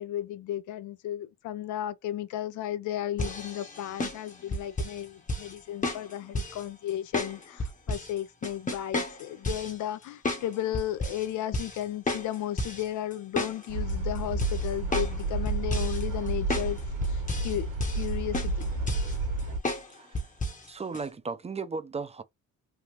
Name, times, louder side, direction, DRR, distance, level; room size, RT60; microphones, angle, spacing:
voice 1, 0.0-17.7 18.0-18.7, left 12 dB, 75° left, 0.5 m, -34 dB
sound 1, 3.2-5.0 5.3-5.5 5.8-6.6 7.1-8.1 8.4-9.7 10.2-10.5 10.7-11.3 11.5-11.8 12.1-12.8 13.1-13.9 14.4-15.2 15.5-16.0 16.5-16.7 17.0-17.6 17.8-18.1 18.3-19.2 19.6-19.9 20.1-20.6 20.9-21.0, left 1 dB, 25° left, 0.9 m, -31 dB
sound 2, 13.7-19.6, right 2 dB, 75° right, 1.3 m, -31 dB
voice 2, 19.9-20.3 20.7-22.2, right 4 dB, 20° right, 0.4 m, -36 dB
3.3 x 2.4 x 2.9 m
cardioid pair, 90°, 30 cm